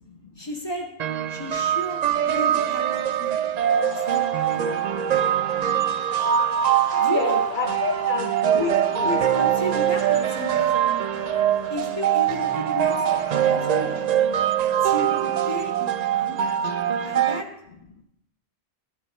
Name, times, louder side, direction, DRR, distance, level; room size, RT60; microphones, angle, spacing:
voice 1, 0.4-0.9 1.3-3.4 3.8-4.2 4.5-4.9 7.0-7.4 8.5-11.3 11.7-14.3 14.8-16.4 17.0-17.5, left 1 dB, 20° left, 0 dB, 1.8 m, -33 dB
sound 1, 1.0-17.4, right 10 dB, 55° right, 0.4 m, -23 dB
voice 2, 3.4-4.0 4.6-5.7 7.0-9.1 11.2-11.6 13.5-13.6 14.3-14.9 16.9-17.1, left 6 dB, 50° left, 6 dB, 0.8 m, -34 dB
sound 2, 3.6-14.1, left 2 dB, 80° left, 2.3 m, -40 dB
11.0 x 9.8 x 4.3 m, 0.78 s
omnidirectional pair, 1.1 m